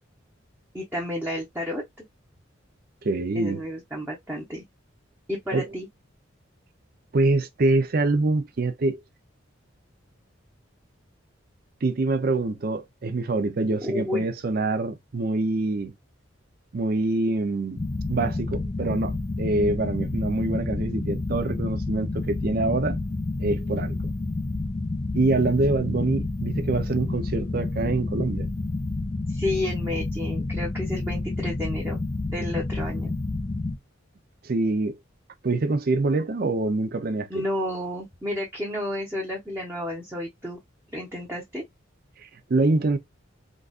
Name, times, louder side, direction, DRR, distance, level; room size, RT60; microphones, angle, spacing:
voice 1, 0.7-1.8 3.3-4.6 5.3-5.9 13.8-14.3 29.3-32.0 32.3-33.1 37.3-40.6 40.9-41.6, left 1 dB, 10° right, 0.8 m, -31 dB
voice 2, 3.0-3.6 5.5-5.7 7.1-9.0 11.8-15.9 16.7-17.8 18.1-23.0 23.4-24.0 25.1-28.5 34.4-34.9 35.4-37.4 42.2-43.0, right 2 dB, 50° right, 0.5 m, -25 dB
sound 1, 17.8-33.8, left 2 dB, 25° left, 0.4 m, -29 dB
3.9 x 2.4 x 2.3 m
head